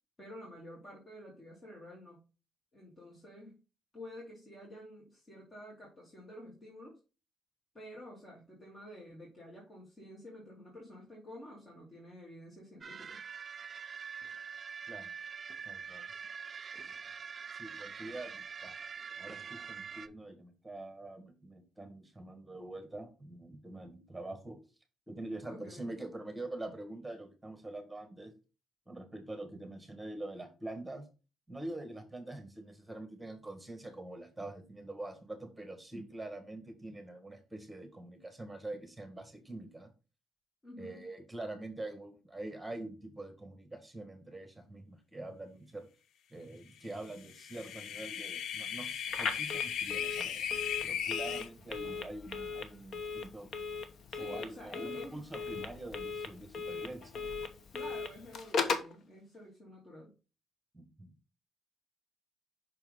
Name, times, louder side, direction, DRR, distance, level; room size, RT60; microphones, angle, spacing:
voice 1, 0.2-2.3 2.7-3.6 3.9-7.0 7.7-13.2 25.5-25.9 40.6-41.0 54.1-55.2 57.7-60.1, left 1 dB, 30° left, -4 dB, 2.7 m, -50 dB
sound 1, 12.8-20.1, right 6 dB, 40° right, 0.4 m, -44 dB
voice 2, 15.6-16.1 17.5-18.7 19.2-24.6 25.1-28.3 28.9-31.1 31.5-39.9 40.8-45.9 46.3-50.5 50.8-53.5 54.2-57.2 60.7-61.1, right 2 dB, 10° right, 7 dB, 1.7 m, -45 dB
sound 2, 47.2-51.5, left 9 dB, 75° left, 0.5 m, -37 dB
Telephone, 49.1-59.0, left 5 dB, 60° left, 1.0 m, -38 dB
5.9 x 4.4 x 3.9 m, 0.32 s
cardioid pair, 90°, 0 cm